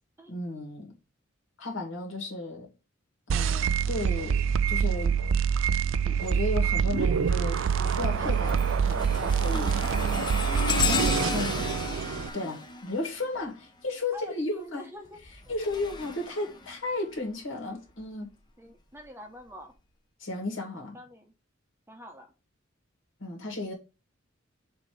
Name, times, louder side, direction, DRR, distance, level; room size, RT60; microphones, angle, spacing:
voice 1, 0.3-0.9 1.6-2.7 3.3-5.2 6.0-10.3 10.9-11.6 12.1-14.9 15.5-18.3 20.2-21.0 23.2-23.7, left 2 dB, 70° left, 2.3 m, -34 dB
sound 1, 3.3-12.3, right 7 dB, 70° right, 0.4 m, -26 dB
sound 2, 6.1-6.5 7.0-13.8 15.0-17.3 17.9-18.1 19.0-19.1, left 4 dB, 20° left, 0.8 m, -34 dB
voice 2, 11.0-11.5 14.1-15.2 18.6-19.7 20.7-21.3 21.9-22.3, equal, 10° right, 0.9 m, -45 dB
6.9 x 3.0 x 5.1 m
head